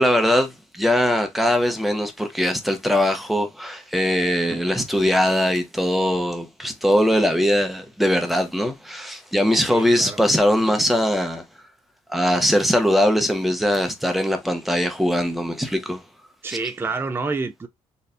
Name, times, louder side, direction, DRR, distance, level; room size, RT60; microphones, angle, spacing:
voice 1, 0.0-11.4 12.1-16.0 16.5-16.6, equal, ahead, 0.9 m, -21 dB
voice 2, 9.6-10.2 16.4-17.7, right 4 dB, 20° right, 0.5 m, -28 dB
4.2 x 3.2 x 2.6 m
cardioid pair, 140°, 12 cm